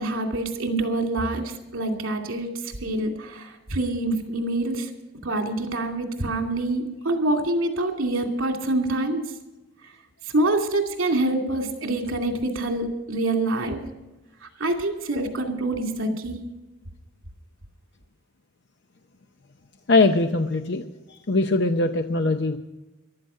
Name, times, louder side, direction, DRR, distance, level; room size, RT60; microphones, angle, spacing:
voice 1, 0.0-4.9 5.2-9.2 10.2-13.8 14.6-16.4, right 2 dB, 75° right, 3 dB, 2.5 m, -26 dB
voice 2, 19.9-22.6, left 3 dB, 55° left, 7 dB, 0.7 m, -22 dB
14.5 x 12.0 x 5.7 m, 1.1 s
head